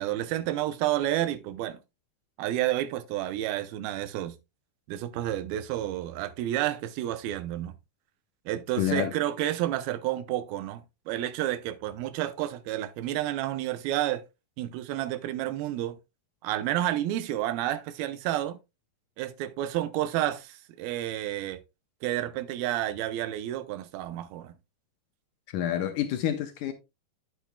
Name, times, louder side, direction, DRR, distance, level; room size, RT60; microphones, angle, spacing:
voice 1, 0.0-1.8 2.4-4.4 4.9-7.7 8.5-14.2 14.6-16.0 16.4-18.6 19.2-21.6 22.0-24.5, right 13 dB, 85° right, 2.6 m, -30 dB
voice 2, 8.8-9.1 25.5-26.7, left 11 dB, 75° left, 2.0 m, -28 dB
10.0 x 7.9 x 2.2 m
omnidirectional pair, 4.2 m